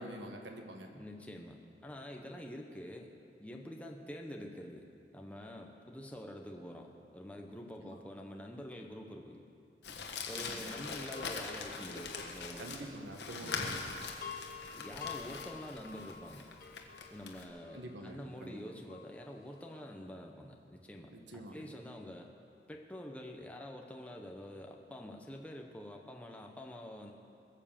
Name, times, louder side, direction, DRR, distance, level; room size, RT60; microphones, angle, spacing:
voice 1, 0.0-0.9 7.8-8.0 10.3-10.7 12.6-13.9 17.7-18.6 21.1-21.6, right 1 dB, 85° right, 3 dB, 1.4 m, -46 dB
voice 2, 0.9-3.1 3.4-4.9 5.1-9.4 9.9-10.0 10.3-12.9 13.4-13.7 14.7-16.5 17.1-22.3 22.7-27.1, equal, 10° left, 1 dB, 0.9 m, -47 dB
Crumpling crinkling, 9.8-17.4, left 4 dB, 75° left, 1.5 m, -42 dB
sound 1, 10.7-13.0 13.3-19.7, left 6 dB, 50° left, 1.6 m, -49 dB
21.5 x 7.4 x 7.3 m, 2.5 s
head